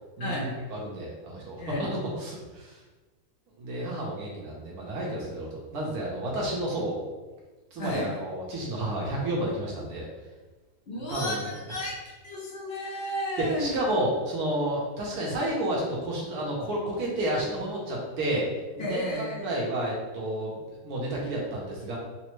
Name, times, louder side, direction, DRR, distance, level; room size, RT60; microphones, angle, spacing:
voice 1, 0.2-2.8 3.6-7.0 7.7-10.1 10.9-11.4 13.4-18.5 18.8-20.5 20.8-22.0, right 1 dB, 75° right, -3 dB, 1.4 m, -31 dB
voice 2, 7.8-8.1 10.9-12.0 12.2-13.7 18.8-19.5, left 1 dB, 55° left, -4 dB, 0.7 m, -32 dB
4.1 x 2.1 x 3.1 m, 1.2 s
omnidirectional pair, 1.7 m